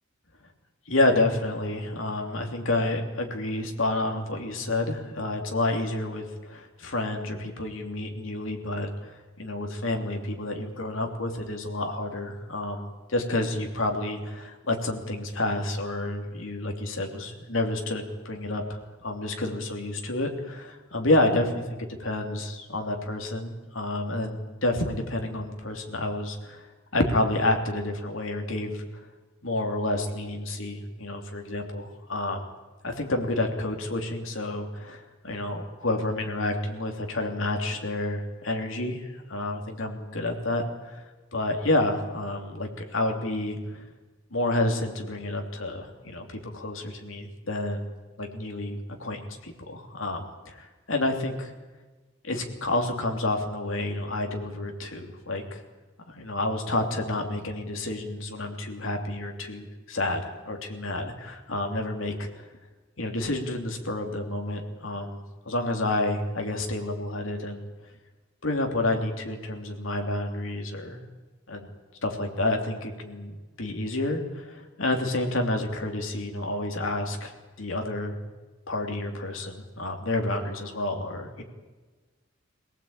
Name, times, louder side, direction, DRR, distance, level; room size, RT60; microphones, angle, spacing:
voice 1, 0.9-21.6 22.0-26.7 26.9-28.8 29.4-32.4 32.8-41.0 41.3-43.8 44.3-47.9 48.2-51.5 52.2-55.6 56.1-62.3 63.0-67.6 68.4-71.0 71.5-71.7 72.0-78.2 78.7-81.4, left 2 dB, 75° left, 3 dB, 3.1 m, -29 dB
24.0 x 18.0 x 8.9 m, 1.2 s
head